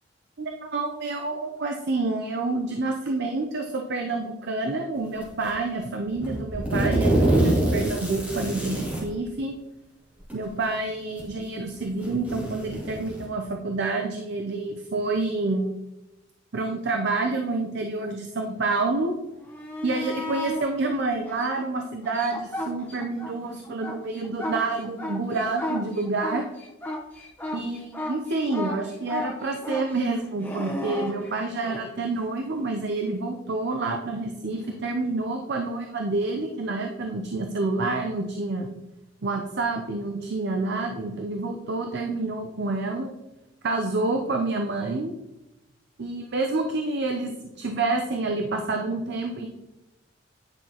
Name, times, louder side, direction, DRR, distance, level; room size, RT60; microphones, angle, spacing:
voice 1, 0.4-9.5 10.3-15.7 16.5-19.1 19.8-26.4 27.5-38.7 39.2-43.1 43.6-45.1 46.0-47.3 47.6-49.5, right 3 dB, 55° right, 3 dB, 0.6 m, -28 dB
sound 1, 5.2-5.6 6.1-9.1 10.2-10.3 11.2-11.3 11.8-13.3, right 1 dB, 10° right, 2.4 m, -25 dB
sound 2, 19.4-20.6 21.3-23.3 23.6-31.9 34.6-34.7, left 1 dB, 10° left, 1.0 m, -34 dB
9.8 x 5.8 x 2.9 m, 0.98 s
head